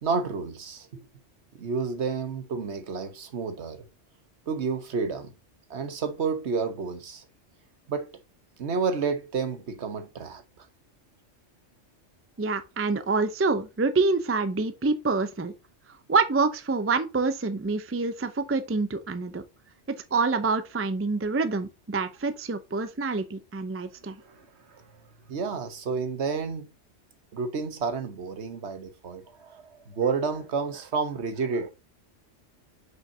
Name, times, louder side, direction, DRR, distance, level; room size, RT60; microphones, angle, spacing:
voice 1, 0.0-1.0 1.5-3.8 4.5-5.3 5.7-7.2 7.9-8.1 8.6-10.7 24.2-24.8 25.3-26.7 27.3-31.7, right 5 dB, 65° right, 1.3 m, -30 dB
voice 2, 12.4-15.5 16.1-19.4 20.1-24.2, right 4 dB, 20° right, 0.3 m, -26 dB
6.3 x 5.5 x 2.7 m
omnidirectional pair, 1.3 m